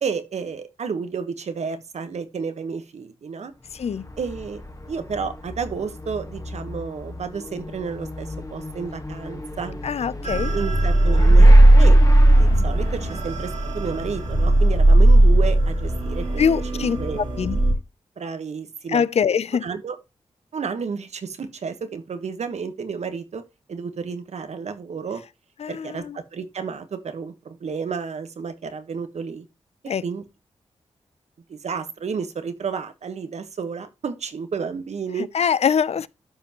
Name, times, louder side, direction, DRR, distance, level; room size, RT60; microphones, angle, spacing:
voice 1, 0.0-3.5 4.2-4.6 4.9-9.8 10.5-12.0 12.3-16.4 16.7-17.2 18.2-19.0 19.6-20.0 20.5-23.4 23.7-25.2 25.7-29.4 30.0-30.2 31.5-35.3, right 5 dB, 70° right, 1.2 m, -31 dB
Motorcycle / Accelerating revving vroom, 3.5-17.4, left 2 dB, 30° left, 1.7 m, -37 dB
voice 2, 3.7-4.0 9.8-10.5 16.4-17.0 17.4-17.6 18.9-19.6 25.6-26.2 29.9-30.0 35.3-36.1, left 7 dB, 65° left, 0.5 m, -23 dB
sound 1, 10.2-17.7, right 1 dB, 85° right, 2.4 m, -16 dB
12.5 x 5.2 x 2.9 m
cardioid pair, 45°, 12 cm